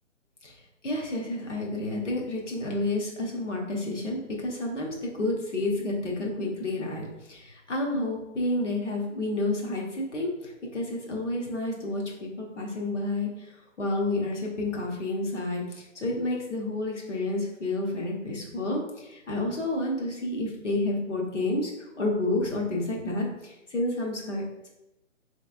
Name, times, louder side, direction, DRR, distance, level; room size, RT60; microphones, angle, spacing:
voice 1, 0.8-21.7 22.0-24.7, left 2 dB, 65° left, -1 dB, 1.0 m, -30 dB
3.2 x 3.2 x 2.5 m, 0.93 s
figure-of-eight pair, 145°, 39 cm